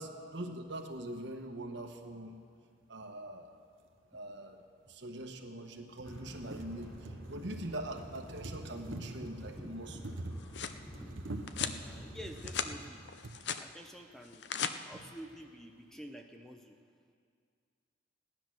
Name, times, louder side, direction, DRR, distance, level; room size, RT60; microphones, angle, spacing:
voice 1, 0.0-2.4 2.9-3.6 4.1-4.6 4.9-10.0 14.9-15.0, right 1 dB, 65° right, 4 dB, 1.2 m, -43 dB
sound 1, 3.8-3.9 4.9-5.0 5.4-5.5 5.8-13.4 14.3-14.4 14.6-14.7, right 2 dB, 85° right, 0.9 m, -46 dB
sound 2, 6.0-12.8, equal, 25° left, 2.4 m, -49 dB
voice 2, 9.6-10.1 10.9-11.1 11.7-13.0 13.6-14.5 14.9-16.8, equal, ahead, 4 dB, 0.6 m, -49 dB
sound 3, 10.1-10.8 11.5-11.8 12.3-12.7 13.1-13.6 14.2-14.7, left 7 dB, 60° left, 0.6 m, -37 dB
16.5 x 10.5 x 6.2 m, 2.2 s
head